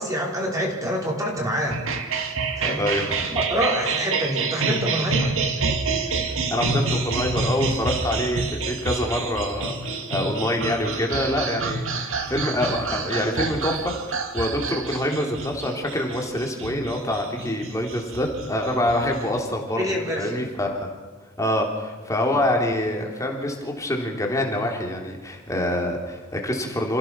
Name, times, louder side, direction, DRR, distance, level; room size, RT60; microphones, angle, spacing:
voice 1, 0.0-1.8 2.6-3.1 3.3-5.4 19.8-20.4, equal, 15° right, -1 dB, 4.4 m, -26 dB
sound 1, 1.7-19.4, right 4 dB, 60° right, 2.2 m, -28 dB
voice 2, 2.8-3.3 6.3-13.9 14.3-19.8 20.2-20.9 21.4-27.0, left 1 dB, 15° left, 1 dB, 3.4 m, -26 dB
27.5 x 16.0 x 6.2 m, 1.3 s
head